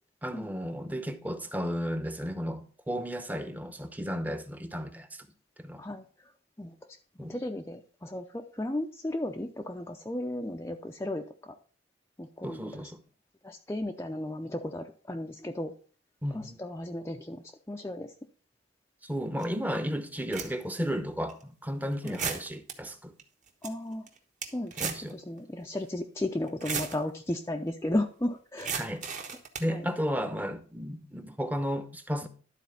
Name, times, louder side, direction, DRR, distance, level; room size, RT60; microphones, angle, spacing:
voice 1, 0.2-5.3 5.6-5.8 7.2-7.3 12.4-13.0 16.2-16.6 19.0-23.1 24.8-25.2 28.8-29.0 29.6-32.3, equal, 10° right, 0.8 m, -33 dB
voice 2, 6.6-7.0 7.3-11.5 12.2-12.9 13.4-15.7 16.3-18.1 19.4-19.8 22.0-22.2 23.6-24.1 24.5-28.8 29.7-29.9, left 1 dB, 15° left, 0.5 m, -35 dB
sound 1, 19.4-19.5 20.1-20.8 21.3-21.4 22.1-22.7 23.2-23.3 23.5-23.7 24.1-25.1 25.4-25.5 26.4-27.0 28.6-29.7, right 6 dB, 40° right, 1.3 m, -35 dB
12.0 x 4.2 x 5.7 m
head